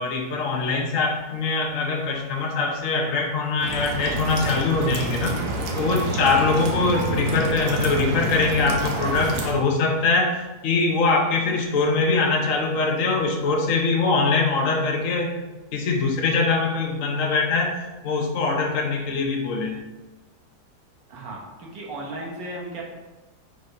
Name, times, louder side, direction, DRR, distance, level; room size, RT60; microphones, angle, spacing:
voice 1, 0.0-5.4 5.7-10.4 10.6-15.3 15.7-17.7 18.0-19.8, left 3 dB, 60° left, 0 dB, 1.0 m, -22 dB
sound 1, 3.6-9.5, right 2 dB, 55° right, 1.2 m, -28 dB
voice 2, 21.1-22.8, right 1 dB, 90° right, -1 dB, 2.0 m, -35 dB
5.3 x 4.3 x 4.7 m, 1.1 s
omnidirectional pair, 1.9 m